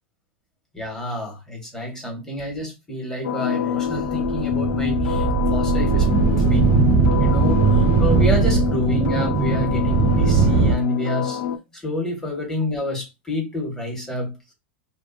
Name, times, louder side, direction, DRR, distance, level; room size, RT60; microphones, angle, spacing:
voice 1, 0.7-5.2 5.5-6.7 7.2-11.4 11.8-14.4, left 1 dB, 10° left, 1.0 m, -28 dB
sound 1, 3.2-11.6, left 9 dB, 70° left, 0.4 m, -25 dB
sound 2, 3.9-10.7, right 5 dB, 30° right, 0.4 m, -19 dB
2.6 x 2.2 x 2.5 m
supercardioid pair, 135°, 6 cm